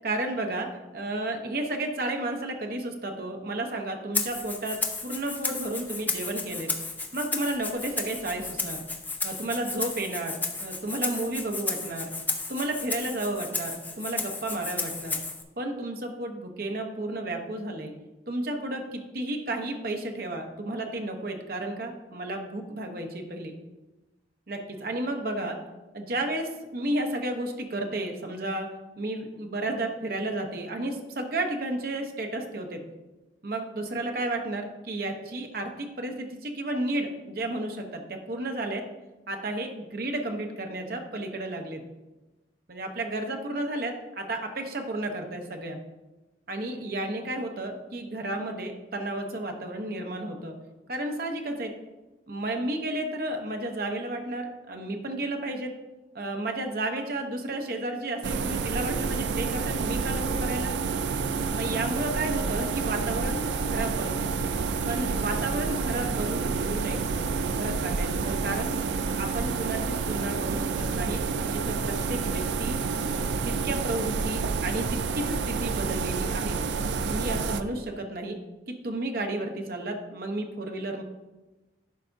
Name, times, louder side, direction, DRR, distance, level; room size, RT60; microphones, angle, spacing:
voice 1, 0.0-6.7 7.1-8.8 9.2-12.1 12.5-15.2 15.6-17.9 18.3-23.5 24.5-25.6 25.9-28.7 29.0-32.8 33.4-38.8 39.3-41.8 42.7-45.8 46.5-50.6 50.9-51.7 52.3-55.7 56.1-60.7 61.5-64.3 64.9-67.3 67.6-68.7 69.2-71.2 71.5-72.8 73.4-76.6 77.1-78.4 78.7-81.0, right 1 dB, 55° right, 3 dB, 0.9 m, -32 dB
Rattle (instrument), 4.1-15.4, left 3 dB, 10° left, 0.5 m, -33 dB
sound 1, 58.2-77.6, right 4 dB, 80° right, 0.4 m, -29 dB
11.5 x 4.8 x 2.7 m, 1.1 s
head